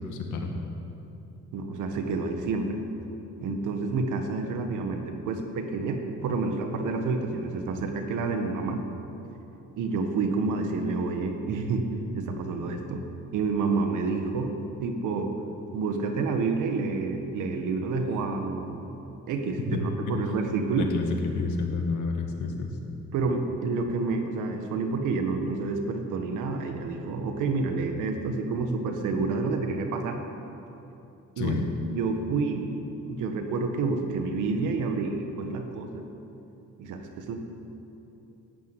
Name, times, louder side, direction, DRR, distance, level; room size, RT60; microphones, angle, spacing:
voice 1, 0.0-0.5 19.6-19.8 20.1-20.2 20.8-21.1 21.3-22.7 31.4-31.6, left 4 dB, 80° left, 2 dB, 2.2 m, -30 dB
voice 2, 1.5-2.8 3.4-8.8 9.8-11.9 12.1-13.1 13.3-15.3 15.7-19.0 19.3-20.9 23.1-30.2 31.4-31.6 31.8-32.7 33.1-36.1 36.8-37.4, right 4 dB, 90° right, 5 dB, 1.8 m, -29 dB
14.5 x 9.7 x 9.4 m, 2.9 s
cardioid pair, 90°, 30 cm